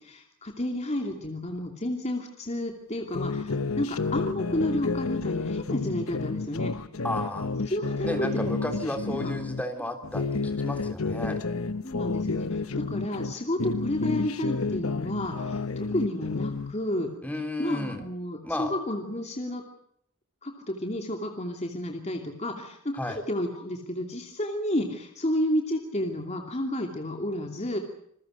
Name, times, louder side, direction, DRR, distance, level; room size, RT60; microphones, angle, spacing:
voice 1, 0.0-6.7 7.7-9.2 11.8-17.1 17.6-19.6 20.4-27.8, left 1 dB, 30° left, 3 dB, 2.8 m, -31 dB
sound 1, 3.1-9.6 10.0-13.3 13.6-16.7, left 3 dB, 80° left, 1.1 m, -30 dB
voice 2, 7.0-7.5 8.0-11.4 17.2-18.0 18.4-18.7 23.0-23.2, left 1 dB, 5° left, 6 dB, 3.3 m, -33 dB
27.5 x 21.5 x 6.6 m, 0.71 s
head